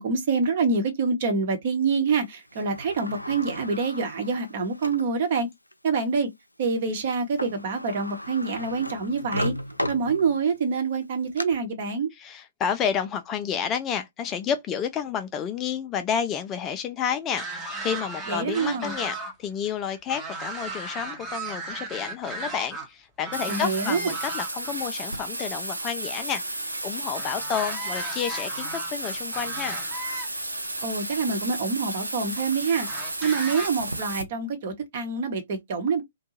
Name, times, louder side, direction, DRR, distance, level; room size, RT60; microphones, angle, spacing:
voice 1, 0.0-5.5 5.8-6.3 6.6-9.5 9.9-12.1 18.3-18.9 23.5-24.0 30.8-32.9 33.2-36.0, right 4 dB, 45° right, 0.9 m, -26 dB
Sliding door, 2.5-5.1 5.7-5.8 7.1-7.2 7.4-10.6 11.0-11.4, left 1 dB, 90° left, 0.4 m, -34 dB
voice 2, 12.1-29.8, left 8 dB, 20° left, 0.3 m, -30 dB
sound 1, 17.3-19.3 19.6-22.9 23.2-24.7 27.1-30.3 31.2-31.3 32.8-33.7, right 2 dB, 10° right, 0.8 m, -36 dB
Bathtub (filling or washing), 23.3-34.2, right 1 dB, 80° right, 0.6 m, -33 dB
2.6 x 2.2 x 2.8 m
figure-of-eight pair, 120°, 0 cm